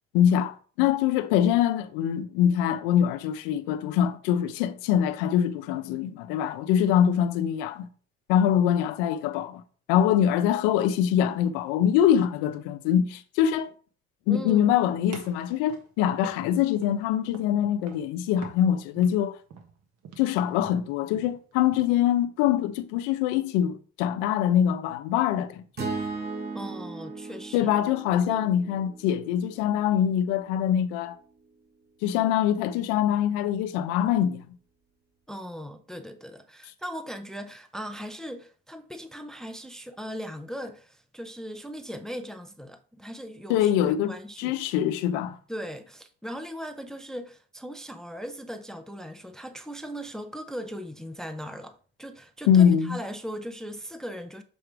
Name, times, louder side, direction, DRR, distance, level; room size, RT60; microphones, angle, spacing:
voice 1, 0.1-7.9 8.3-9.6 9.9-13.7 14.3-19.4 20.2-25.6 27.5-31.2 32.0-34.4 43.5-45.4 52.5-53.0, left 10 dB, 90° left, 0.7 m, -24 dB
voice 2, 14.3-14.7 26.5-27.7 28.3-28.5 35.3-44.6 45.5-54.4, equal, ahead, 0.6 m, -38 dB
sound 1, 15.1-16.9 17.3-17.6 17.9-18.1 18.4-22.0, right 6 dB, 55° right, 1.3 m, -46 dB
sound 2, 25.8-30.0, right 3 dB, 35° right, 2.0 m, -37 dB
6.9 x 3.2 x 4.9 m
supercardioid pair, 95°, 30 cm